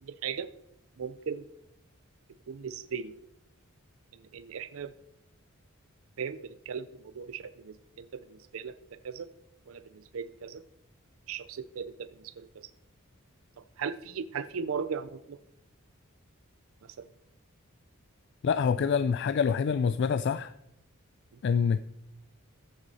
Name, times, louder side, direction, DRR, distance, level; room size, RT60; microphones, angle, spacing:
voice 1, 0.0-0.5 1.0-1.4 2.5-3.1 4.3-4.9 6.2-8.7 9.0-9.3 9.7-10.6 11.3-12.5 13.8-15.4 17.0-17.1, right 6 dB, 75° right, 0.5 m, -37 dB
voice 2, 18.4-20.5 21.4-21.8, left 6 dB, 55° left, 0.3 m, -26 dB
14.5 x 7.9 x 4.2 m
head